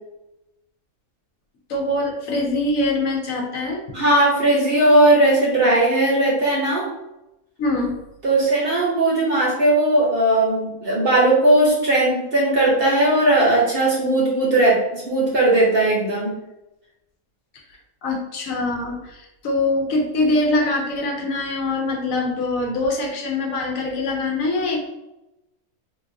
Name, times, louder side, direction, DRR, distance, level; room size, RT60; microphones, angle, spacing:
voice 1, 1.7-3.8 7.6-8.0 18.0-24.8, left 2 dB, 70° left, 1 dB, 1.1 m, -23 dB
voice 2, 3.9-6.9 8.2-16.3, right 1 dB, 50° right, -4 dB, 0.8 m, -18 dB
3.7 x 2.4 x 2.6 m, 0.93 s
omnidirectional pair, 1.5 m